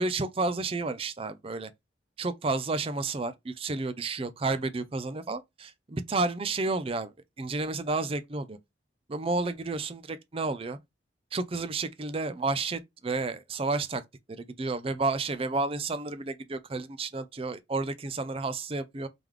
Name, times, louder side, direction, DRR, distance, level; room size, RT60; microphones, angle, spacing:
voice 1, 0.0-1.7 2.2-8.6 9.1-10.8 11.3-14.0 14.3-19.1, right 3 dB, 30° right, 0.5 m, -31 dB
3.4 x 3.1 x 3.7 m
head